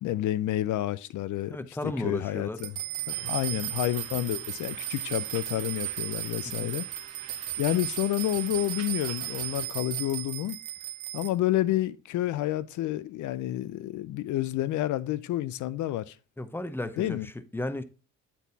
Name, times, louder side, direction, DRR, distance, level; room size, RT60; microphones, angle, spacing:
voice 1, 0.0-2.7 3.1-6.9 7.6-10.6 11.1-16.2 17.0-17.3, left 14 dB, 75° left, 0.5 m, -29 dB
voice 2, 1.5-2.6 6.4-6.7 16.4-17.8, left 1 dB, 5° left, 0.7 m, -34 dB
sound 1, 2.6-11.3, right 13 dB, 80° right, 1.0 m, -35 dB
sound 2, 3.1-9.7, right 5 dB, 55° right, 1.7 m, -48 dB
8.1 x 4.4 x 4.0 m
cardioid pair, 90°, 30 cm